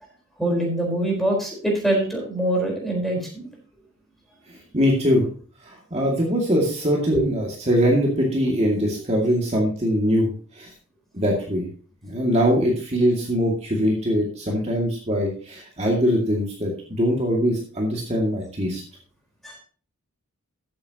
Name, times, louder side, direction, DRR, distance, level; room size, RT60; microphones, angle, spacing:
voice 1, 0.4-3.5 7.1-7.3 19.4-19.5, right 1 dB, ahead, -1 dB, 4.3 m, -24 dB
voice 2, 4.7-5.2 5.7-10.7 11.1-11.7 12.0-18.8, equal, 30° right, -2 dB, 2.3 m, -22 dB
14.5 x 8.8 x 2.9 m, 0.41 s
head